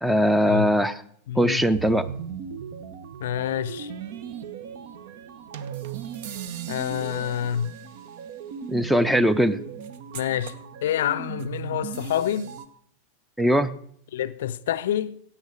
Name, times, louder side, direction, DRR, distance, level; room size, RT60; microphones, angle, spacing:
voice 1, 0.0-1.0 1.4-2.1 8.7-9.6 13.4-13.7, equal, 5° right, 0.6 m, -20 dB
voice 2, 1.3-1.6 3.2-3.9 6.7-7.7 10.1-12.5 14.1-15.2, left 11 dB, 60° left, 0.4 m, -27 dB
sound 1, 1.7-12.7, right 7 dB, 50° right, 0.8 m, -37 dB
15.5 x 8.8 x 4.8 m
figure-of-eight pair, 90°, 0 cm